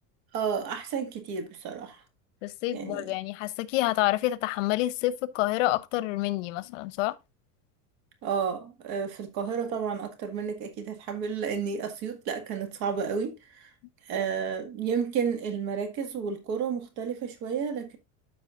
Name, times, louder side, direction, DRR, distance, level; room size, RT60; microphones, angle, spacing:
voice 1, 0.3-2.0 2.7-3.1 8.2-13.7 14.0-18.0, right 6 dB, 50° right, 1.9 m, -31 dB
voice 2, 2.4-7.2, left 17 dB, 90° left, 0.8 m, -28 dB
13.0 x 4.7 x 2.5 m
cardioid pair, 160°, 36 cm